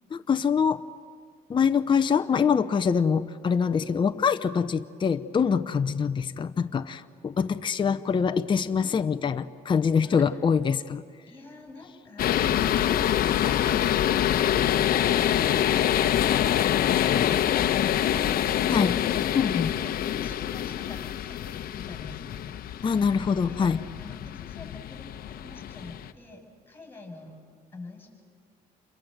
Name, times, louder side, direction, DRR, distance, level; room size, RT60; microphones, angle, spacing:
voice 1, 0.1-0.8 1.5-11.0 18.7-19.0 19.3-19.7 22.8-23.8, left 6 dB, 30° left, 9 dB, 0.7 m, -24 dB
voice 2, 9.9-10.2 19.1-19.4 19.8-22.4 23.5-23.7 24.0-27.4 27.7-28.1, left 2 dB, 15° left, 2 dB, 7.4 m, -47 dB
sound 1, 12.2-26.1, left 11 dB, 60° left, 1.0 m, -25 dB
28.0 x 22.5 x 7.9 m, 2.1 s
cardioid pair, 110°, 17 cm